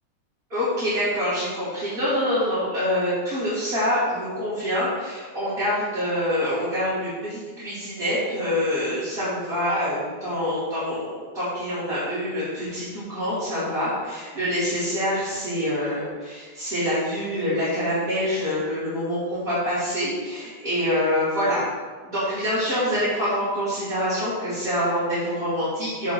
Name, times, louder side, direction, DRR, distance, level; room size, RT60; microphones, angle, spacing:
voice 1, 0.5-21.6 22.0-26.1, equal, 25° right, -13 dB, 2.4 m, -26 dB
7.5 x 3.1 x 5.8 m, 1.4 s
omnidirectional pair, 2.2 m